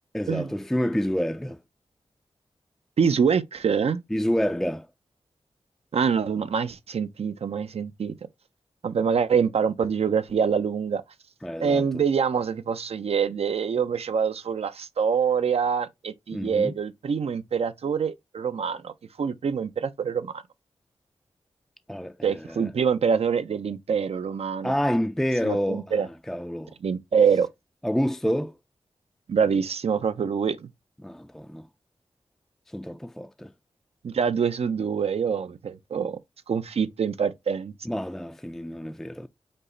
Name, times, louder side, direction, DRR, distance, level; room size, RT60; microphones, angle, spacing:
voice 1, 0.1-1.6 4.1-4.9 11.4-11.8 16.3-16.7 21.9-22.7 24.6-26.0 26.3-26.7 27.8-28.5 31.0-31.7 32.7-33.5 37.9-39.3, equal, 5° left, 0.3 m, -28 dB
voice 2, 3.0-4.0 5.9-8.1 8.8-11.0 11.6-18.9 19.2-20.4 22.2-24.7 25.4-26.1 26.8-27.5 29.3-30.7 34.0-36.2 36.5-37.7, right 6 dB, 70° right, 0.5 m, -25 dB
5.3 x 2.0 x 3.7 m
cardioid pair, 45°, 11 cm